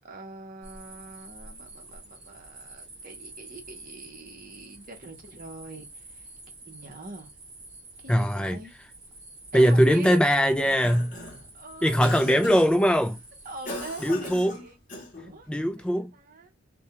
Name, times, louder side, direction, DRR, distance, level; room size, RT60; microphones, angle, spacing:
voice 1, 0.0-6.3 6.7-7.3 8.0-8.7 9.5-10.2 11.5-12.2 13.4-14.8 15.2-15.5 15.8-15.9 16.1-16.5, right 2 dB, 40° right, 0.7 m, -43 dB
sound 1, 0.6-14.1, right 2 dB, 25° right, 1.0 m, -48 dB
voice 2, 8.1-8.6 9.5-11.1 11.8-13.2 14.0-14.6 15.5-16.1, equal, 5° left, 0.3 m, -21 dB
Cough, 10.5-11.5 12.0-12.8 13.7-15.3, left 2 dB, 40° left, 0.9 m, -38 dB
2.3 x 2.2 x 2.9 m
head